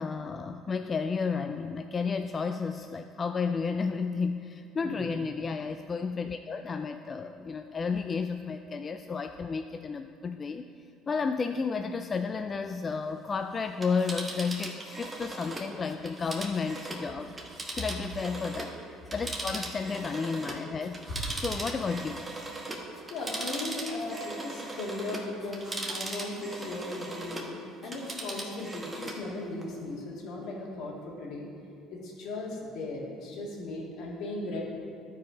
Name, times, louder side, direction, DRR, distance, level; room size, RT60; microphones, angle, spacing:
voice 1, 0.0-10.6 11.1-17.4 17.7-18.8 19.1-21.0 21.4-22.3, left 5 dB, 30° left, 7 dB, 0.3 m, -32 dB
voice 2, 4.8-5.1 23.1-27.6 27.8-31.5 31.9-34.6, left 2 dB, 65° left, -3 dB, 2.2 m, -37 dB
Telephone, 13.7-18.8 19.1-27.5 27.8-29.2 29.6-29.7, right 2 dB, 15° right, 1.3 m, -39 dB
12.0 x 4.8 x 5.1 m, 2.5 s
cardioid pair, 105°, 0 cm